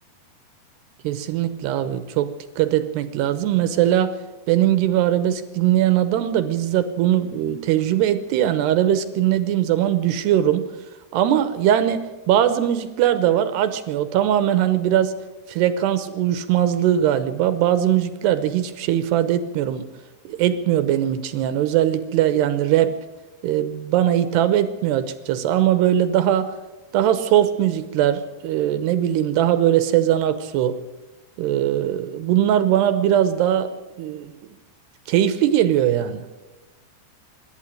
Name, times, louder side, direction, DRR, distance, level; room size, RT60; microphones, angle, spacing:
voice 1, 1.0-4.2 4.5-10.7 11.1-15.2 15.5-19.9 20.3-23.0 23.4-26.5 26.9-30.8 31.4-34.3 35.1-36.3, right 11 dB, 75° right, 12 dB, 2.9 m, -20 dB
25.5 x 12.0 x 9.1 m, 1.2 s
omnidirectional pair, 5.0 m